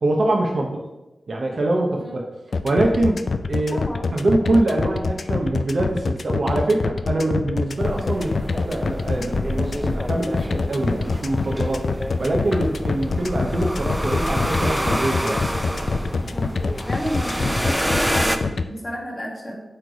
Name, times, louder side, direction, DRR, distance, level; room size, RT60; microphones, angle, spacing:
voice 1, 0.0-0.8 1.3-2.2 2.6-3.8 4.1-11.9 12.2-15.5, right 2 dB, 55° right, 0 dB, 0.7 m, -23 dB
sound 1, 2.5-18.6, left 4 dB, 65° left, 0.3 m, -25 dB
voice 2, 3.7-4.1 16.3-19.6, equal, 30° left, -2 dB, 1.4 m, -32 dB
sound 2, 7.8-18.4, equal, 5° right, 0.4 m, -28 dB
7.9 x 3.3 x 4.7 m, 1.0 s
wide cardioid pair, 115°, 0 cm